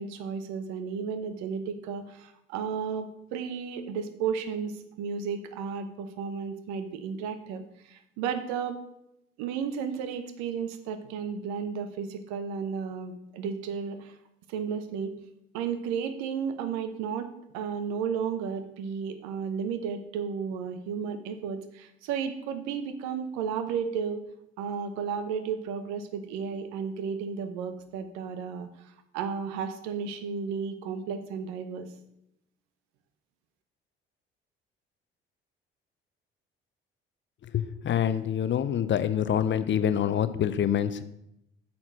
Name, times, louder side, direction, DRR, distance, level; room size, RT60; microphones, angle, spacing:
voice 1, 0.0-8.8 9.4-14.1 14.5-15.1 15.5-24.2 24.6-31.9, right 6 dB, 70° right, 9 dB, 0.9 m, -33 dB
voice 2, 37.5-41.0, left 9 dB, 40° left, 13 dB, 0.7 m, -26 dB
8.7 x 4.3 x 6.3 m, 0.81 s
hypercardioid pair, 50°, 29 cm